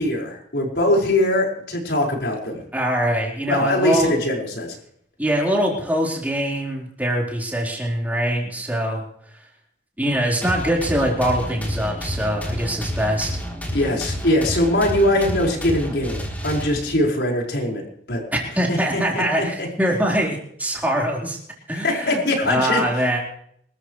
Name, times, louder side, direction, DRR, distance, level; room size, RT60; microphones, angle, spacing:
voice 1, 0.0-2.6 3.5-4.7 13.7-17.8 18.1-18.2 18.7-19.7 21.7-22.8, left 1 dB, 70° left, -1 dB, 5.3 m, -22 dB
voice 2, 2.7-4.1 5.2-9.0 10.0-13.4 18.3-21.4 21.7-23.2, equal, 10° right, -2 dB, 4.5 m, -23 dB
sound 1, 10.4-17.1, equal, 10° left, 3.5 m, -30 dB
26.5 x 13.5 x 3.3 m, 0.68 s
head